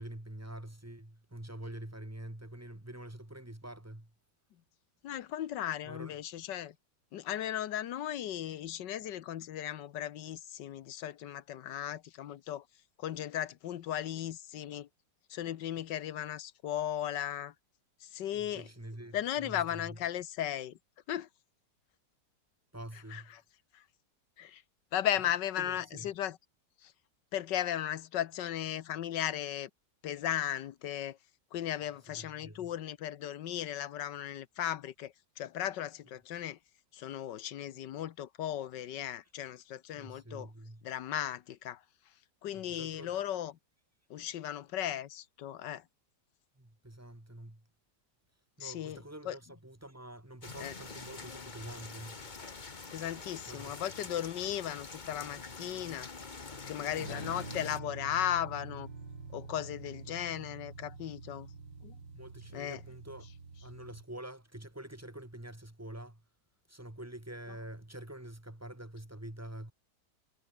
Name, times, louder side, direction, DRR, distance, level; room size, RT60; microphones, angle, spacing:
voice 1, 0.0-4.1 5.8-6.2 18.3-20.0 22.7-23.3 25.2-25.3 25.6-26.1 32.1-32.7 39.9-40.9 42.5-43.1 46.6-47.6 48.6-52.2 53.5-53.8 62.1-63.3 63.6-66.2 66.7-69.7, right 1 dB, 10° right, 2.1 m, -46 dB
voice 2, 5.0-6.7 7.1-12.6 13.0-14.9 15.3-17.5 18.0-18.7 19.1-20.8 21.1-21.3 23.1-23.4 23.7-23.8 24.4-24.6 24.9-26.4 26.8-26.9 27.3-29.7 30.0-31.2 31.5-36.6 36.9-40.5 40.8-41.8 42.4-43.5 44.1-45.8 48.6-49.0 49.2-49.4 50.6-50.7 52.9-56.1 56.7-58.9 59.3-61.5 61.8-61.9 62.5-62.8, left 11 dB, 75° left, 1.5 m, -36 dB
sound 1, 50.4-57.8, left 4 dB, 25° left, 1.4 m, -46 dB
sound 2, 57.0-64.0, right 4 dB, 75° right, 4.0 m, -46 dB
omnidirectional pair, 2.0 m